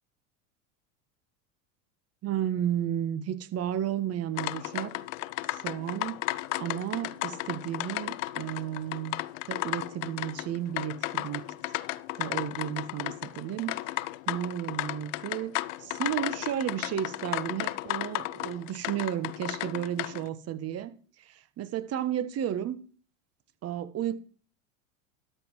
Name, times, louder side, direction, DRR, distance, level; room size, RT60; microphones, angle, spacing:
voice 1, 2.2-4.9 5.5-9.2 9.5-11.4 12.2-14.0 14.3-15.5 15.8-22.8 23.6-24.2, right 10 dB, 40° right, 1.1 m, -33 dB
sound 1, 4.4-20.3, left 18 dB, 70° left, 0.6 m, -34 dB
12.5 x 5.6 x 4.7 m
hypercardioid pair, 100°, 39 cm